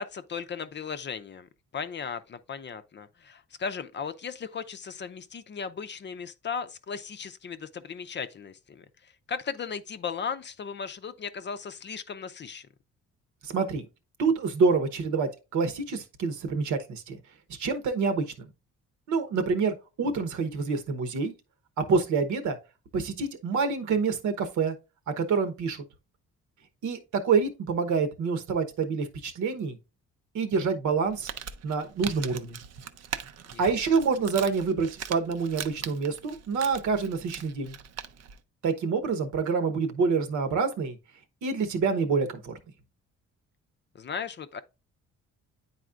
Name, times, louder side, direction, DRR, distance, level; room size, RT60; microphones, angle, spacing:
voice 1, 0.0-12.7 33.5-33.7 43.9-44.6, left 6 dB, 40° left, 0.5 m, -37 dB
voice 2, 13.4-13.8 14.2-17.2 17.6-18.5 19.1-21.3 21.9-22.6 22.9-24.7 25.2-25.8 26.8-29.8 30.3-31.3 31.6-32.6 33.6-37.8 38.6-41.0 41.4-42.5, right 5 dB, 75° right, 1.1 m, -27 dB
Crumpling crinkling, 31.0-38.4, right 8 dB, 55° right, 0.6 m, -41 dB
9.2 x 4.2 x 2.4 m
cardioid pair, 90°, 30 cm